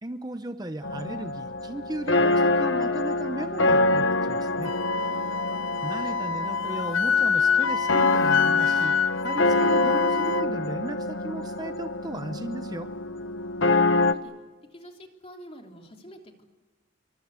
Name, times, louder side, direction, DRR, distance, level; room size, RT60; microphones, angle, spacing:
voice 1, 0.0-4.8 5.8-9.0 9.2-12.9, right 1 dB, 20° right, 8 dB, 0.8 m, -35 dB
sound 1, 0.8-14.1, left 2 dB, 70° left, 1.2 m, -26 dB
Wind instrument woodwind instrument, 4.6-10.5, left 6 dB, 90° left, 0.8 m, -26 dB
voice 2, 4.9-5.4 14.0-14.3 14.7-16.4, equal, 30° left, 3 dB, 3.1 m, -47 dB
27.5 x 23.5 x 8.2 m, 1.3 s
head